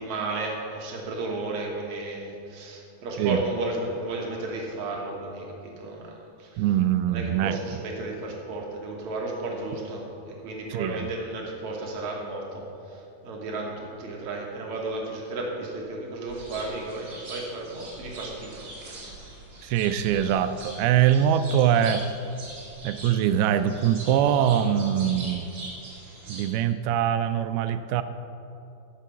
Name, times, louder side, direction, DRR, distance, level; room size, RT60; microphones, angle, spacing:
voice 1, 0.0-6.6 7.1-19.1, right 2 dB, 60° right, -1 dB, 2.2 m, -33 dB
voice 2, 6.6-7.6 10.7-11.1 19.6-22.1 22.8-25.6 26.3-28.0, right 10 dB, 80° right, 11 dB, 2.3 m, -23 dB
sound 1, 16.3-26.5, right 1 dB, 40° right, 1.8 m, -42 dB
10.5 x 7.0 x 6.9 m, 2.7 s
omnidirectional pair, 4.6 m